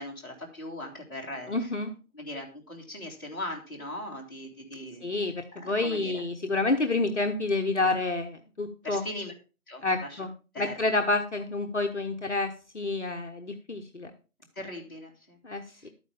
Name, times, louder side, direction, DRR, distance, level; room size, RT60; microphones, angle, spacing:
voice 1, 0.0-1.7 2.1-5.0 5.5-6.2 8.8-9.3 9.7-10.2 10.5-10.7 14.6-15.4 15.7-15.9, left 1 dB, 15° left, -6 dB, 2.0 m, -39 dB
voice 2, 1.5-1.9 5.0-9.0 9.8-10.3 10.6-14.1 15.4-15.6, left 3 dB, 50° left, 5 dB, 1.0 m, -29 dB
12.0 x 9.2 x 3.5 m, 0.33 s
figure-of-eight pair, 165°, 44 cm